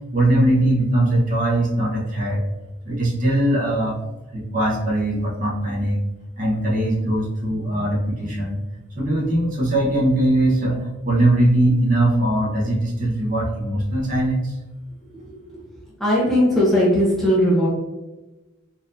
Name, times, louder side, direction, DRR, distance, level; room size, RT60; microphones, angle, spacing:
voice 1, 0.1-2.4 2.8-4.0 4.3-6.0 6.4-8.6 9.0-14.5, right 1 dB, 40° right, -4 dB, 0.9 m, -20 dB
voice 2, 16.0-17.7, equal, ahead, -7 dB, 0.7 m, -18 dB
4.1 x 2.6 x 2.7 m, 1.1 s
head